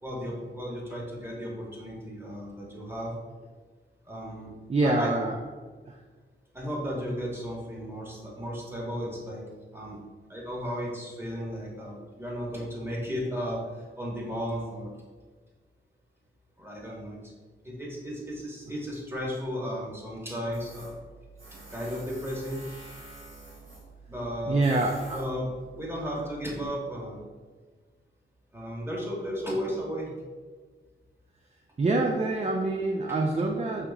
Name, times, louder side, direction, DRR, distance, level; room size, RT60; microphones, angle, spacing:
voice 1, 0.0-3.1 4.0-4.5 4.8-5.1 6.5-9.4 9.7-10.0 10.3-14.9 16.6-17.2 17.6-21.0 21.5-22.6 24.1-24.6 25.1-25.5 25.7-27.2 28.5-30.1, equal, 10° right, -4 dB, 1.2 m, -34 dB
voice 2, 4.7-5.4 5.9-6.0 24.5-25.2 31.8-33.9, right 2 dB, 30° right, 2 dB, 0.4 m, -26 dB
Tools, 20.5-26.7, right 2 dB, 85° right, 1.4 m, -48 dB
4.9 x 2.9 x 2.3 m, 1.4 s
cardioid pair, 60°, 21 cm